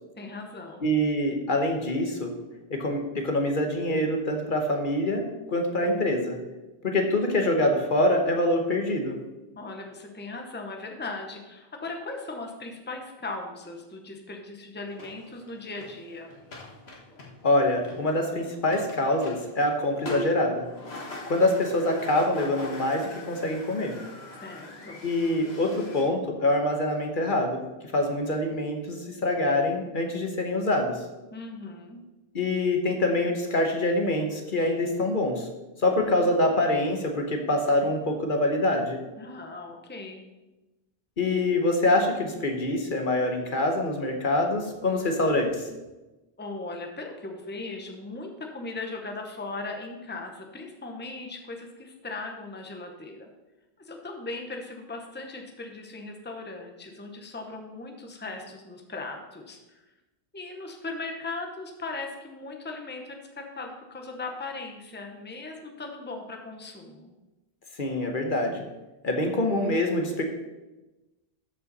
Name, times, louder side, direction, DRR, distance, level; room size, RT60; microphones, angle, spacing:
voice 1, 0.2-0.9 9.6-16.3 24.4-25.1 31.3-32.0 39.2-40.2 46.4-53.3 53.8-59.8 60.3-67.2, left 3 dB, 10° left, 3 dB, 0.9 m, -38 dB
voice 2, 0.8-2.3 2.7-5.2 5.5-6.4 6.8-9.2 17.4-20.6 21.3-23.9 25.0-27.6 27.9-31.0 32.3-35.5 35.8-39.0 41.2-45.7 67.8-68.6 69.0-70.2, left 1 dB, 55° left, 3 dB, 1.2 m, -25 dB
sound 1, 14.9-26.0, left 2 dB, 80° left, 1.8 m, -42 dB
13.0 x 5.5 x 4.1 m, 1.1 s
omnidirectional pair, 1.1 m